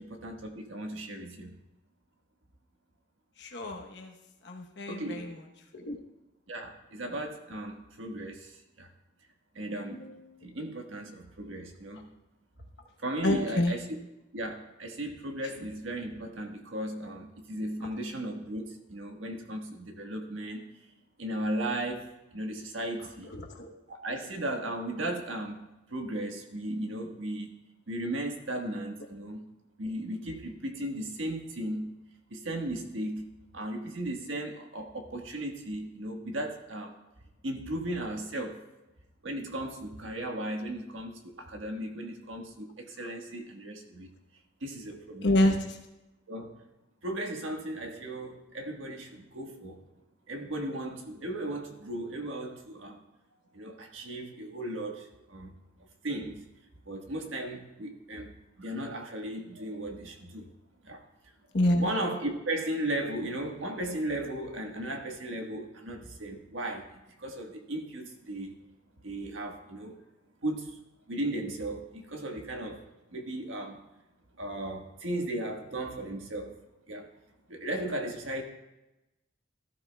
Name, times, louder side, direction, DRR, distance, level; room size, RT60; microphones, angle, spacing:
voice 1, 0.0-1.5 4.9-5.3 6.5-8.9 9.5-10.0 10.4-12.1 13.0-13.8 14.3-20.6 21.2-22.0 22.3-23.3 23.9-25.6 25.9-27.5 27.9-29.5 29.8-31.9 32.3-33.3 33.5-36.9 37.4-38.6 39.2-44.1 44.6-45.3 46.3-46.6 47.0-49.8 50.3-53.0 53.5-55.5 56.0-56.4 56.8-60.5 60.8-61.0 61.8-68.5 69.0-70.0 70.4-70.8 71.1-72.8 73.1-73.8 74.4-76.6 76.9-77.1 77.5-78.4, right 1 dB, 85° right, 2 dB, 1.5 m, -36 dB
voice 2, 3.4-4.1 4.4-5.4 5.7-5.9 9.9-10.5 13.2-13.7 23.2-23.7 38.3-38.4 43.0-43.2 45.2-45.8 61.5-61.9, left 1 dB, 60° left, 2 dB, 1.0 m, -28 dB
14.0 x 12.5 x 2.3 m, 0.98 s
head